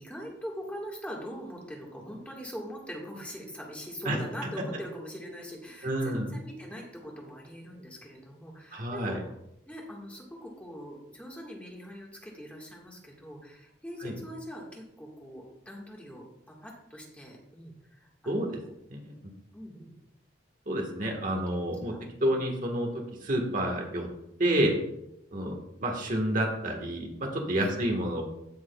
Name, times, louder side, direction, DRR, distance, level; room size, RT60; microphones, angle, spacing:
voice 1, 0.0-9.3 9.6-18.7 19.5-19.9 21.2-21.4 21.9-22.3 25.4-25.5 27.6-27.8, equal, 5° left, -2 dB, 1.6 m, -42 dB
voice 2, 5.8-6.3 8.7-9.2 14.0-14.1 18.2-18.6 18.9-19.1 20.7-21.9 22.2-22.9 23.2-24.1 24.4-24.7 25.3-28.2, right 1 dB, 45° right, 1 dB, 1.5 m, -29 dB
15.5 x 6.1 x 2.3 m, 0.81 s
head